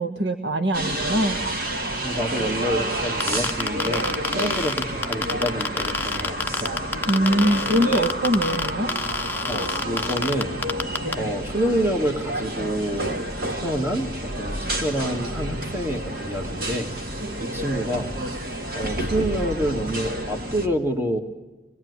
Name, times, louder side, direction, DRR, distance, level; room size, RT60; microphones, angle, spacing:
voice 1, 0.0-1.4 7.1-8.9, equal, 75° right, 6 dB, 1.4 m, -22 dB
sound 1, 0.7-20.7, right 1 dB, 55° right, 2.3 m, -30 dB
voice 2, 2.0-6.7 7.8-8.1 9.5-10.5 11.2-13.2 13.5-16.9 17.4-18.1 18.7-21.2, equal, 15° right, 4 dB, 1.9 m, -27 dB
sound 2, 3.2-11.1, left 3 dB, 10° left, 0.8 m, -26 dB
25.0 x 21.0 x 9.6 m, 1.2 s
head